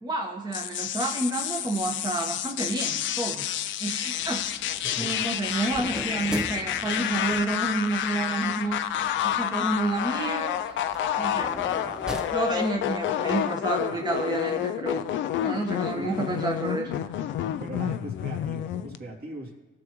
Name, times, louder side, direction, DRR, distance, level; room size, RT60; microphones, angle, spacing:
voice 1, 0.0-3.4 3.8-4.4 5.0-8.8 9.2-10.6 11.2-11.5 12.3-15.1 15.4-17.0, right 2 dB, 20° right, 0 dB, 1.3 m, -29 dB
sound 1, 0.5-19.0, left 10 dB, 70° left, 0.4 m, -29 dB
sound 2, 4.2-13.1, equal, 5° right, 0.8 m, -41 dB
voice 2, 4.8-5.5 15.9-16.2 17.6-19.5, right 2 dB, 50° right, -3 dB, 2.7 m, -39 dB
17.5 x 6.2 x 3.1 m, 1.2 s
cardioid pair, 90°, 20 cm